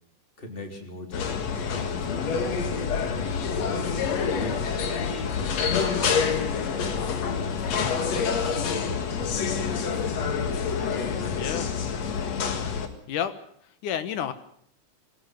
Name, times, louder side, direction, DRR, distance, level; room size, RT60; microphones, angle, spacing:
voice 1, 0.4-2.8 3.4-9.1 9.7-11.8, left 1 dB, 15° left, 4 dB, 3.3 m, -42 dB
sound 1, 1.1-12.9, left 6 dB, 55° left, 2.8 m, -27 dB
voice 2, 11.4-11.7 13.1-14.3, left 9 dB, 70° left, 12 dB, 2.8 m, -31 dB
22.0 x 16.5 x 9.2 m, 0.65 s
omnidirectional pair, 3.7 m